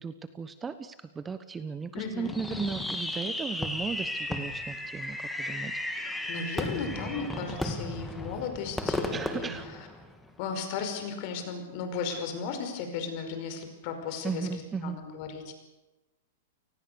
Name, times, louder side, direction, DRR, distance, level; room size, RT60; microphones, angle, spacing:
voice 1, 0.0-5.7 9.1-9.7 14.2-15.0, right 5 dB, 15° right, 12 dB, 1.0 m, -36 dB
voice 2, 1.9-2.7 6.0-9.8 10.4-14.5 14.8-15.5, left 5 dB, 45° left, 6 dB, 5.2 m, -36 dB
Fireworks, 2.3-10.4, left 1 dB, 5° left, 2.2 m, -34 dB
29.5 x 19.0 x 7.0 m, 1.1 s
supercardioid pair, 150°, 0 cm